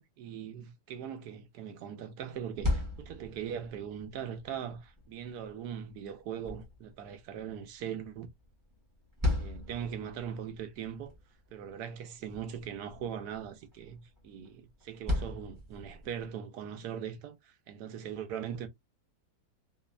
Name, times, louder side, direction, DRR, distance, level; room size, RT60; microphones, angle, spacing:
voice 1, 0.0-8.3 9.3-11.1 11.5-18.7, right 8 dB, 75° right, 1.1 m, -40 dB
sound 1, 2.3-16.3, left 2 dB, 15° right, 0.8 m, -39 dB
3.1 x 2.0 x 2.2 m
omnidirectional pair, 1.8 m